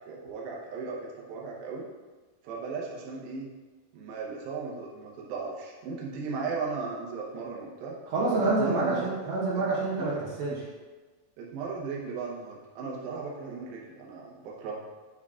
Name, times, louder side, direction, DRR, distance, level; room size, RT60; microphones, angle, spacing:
voice 1, 0.1-1.9 2.4-3.5 3.9-8.0 8.3-9.1 9.6-9.7 10.0-10.1 11.4-14.8, right 4 dB, 80° right, -3 dB, 2.7 m, -36 dB
voice 2, 8.1-10.6, right 3 dB, 55° right, -6 dB, 2.4 m, -27 dB
8.4 x 4.4 x 3.6 m, 1.3 s
omnidirectional pair, 4.2 m